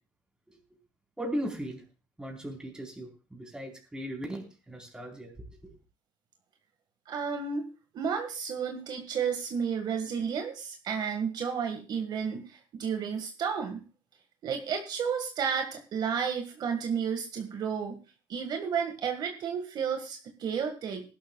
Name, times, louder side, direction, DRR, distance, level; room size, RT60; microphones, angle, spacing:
voice 1, 1.2-1.8 2.2-5.3 5.6-5.7, equal, 10° right, 0 dB, 4.2 m, -37 dB
voice 2, 7.1-7.6 7.9-13.8 14.4-18.0 18.3-21.0, right 6 dB, 60° right, 5 dB, 1.8 m, -32 dB
20.0 x 12.0 x 2.4 m, 0.33 s
cardioid pair, 110°, 8 cm